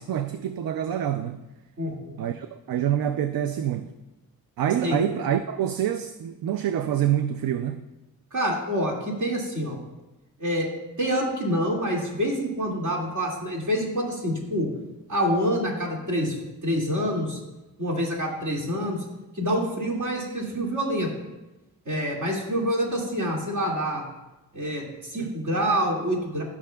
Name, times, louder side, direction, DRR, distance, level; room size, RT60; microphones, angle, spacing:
voice 1, 0.0-1.4 2.2-3.9 4.6-7.8 25.2-25.3, right 10 dB, 75° right, 0.5 m, -26 dB
voice 2, 1.8-2.2 4.8-5.0 8.3-9.8 10.4-10.7 11.0-14.7 15.1-17.4 17.8-19.0 19.3-21.1 21.9-24.0 24.5-26.4, equal, 55° right, 2.2 m, -27 dB
16.5 x 6.0 x 2.3 m
wide cardioid pair, 105°, 36 cm